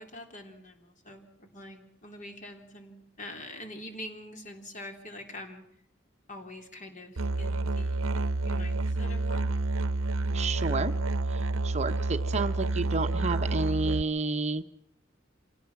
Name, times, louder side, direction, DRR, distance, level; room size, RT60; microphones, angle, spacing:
voice 1, 0.0-5.6 6.3-9.4, left 1 dB, 40° left, 4 dB, 3.5 m, -45 dB
Musical instrument, 7.2-14.0, right 2 dB, 85° right, 0.7 m, -29 dB
voice 2, 10.3-10.9 11.3-14.6, right 3 dB, 35° right, 8 dB, 0.8 m, -30 dB
26.5 x 18.0 x 5.9 m, 0.75 s
head